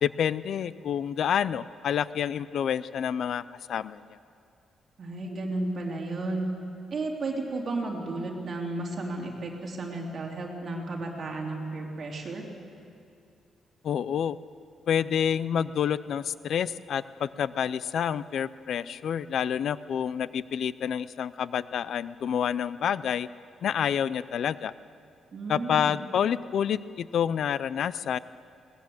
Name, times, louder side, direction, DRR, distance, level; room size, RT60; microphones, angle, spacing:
voice 1, 0.0-3.4 3.7-4.0 13.8-14.4 14.9-23.3 23.6-24.7 25.5-28.2, left 8 dB, 55° left, 17 dB, 0.4 m, -28 dB
voice 2, 5.0-6.5 6.9-12.4 25.3-25.9, right 2 dB, 35° right, 0 dB, 3.2 m, -33 dB
21.0 x 18.5 x 7.9 m, 2.5 s
wide cardioid pair, 175°, 0 cm